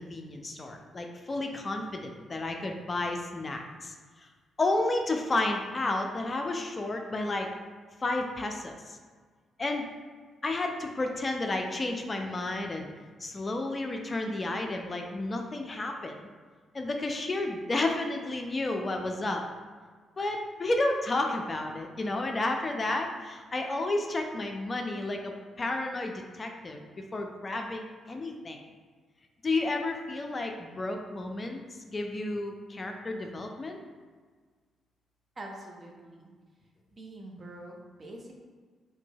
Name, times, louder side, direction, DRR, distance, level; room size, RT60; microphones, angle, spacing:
voice 1, 0.0-4.3 4.6-7.5 8.0-9.0 9.6-9.9 10.4-12.9 13.2-16.2 16.7-19.4 20.2-28.6 29.4-31.6 31.9-33.8, left 2 dB, 35° left, 3 dB, 0.4 m, -31 dB
voice 2, 35.4-36.3 36.9-38.3, right 1 dB, 40° right, 0 dB, 0.6 m, -45 dB
3.7 x 2.7 x 2.3 m, 1.5 s
hypercardioid pair, 40°, 0 cm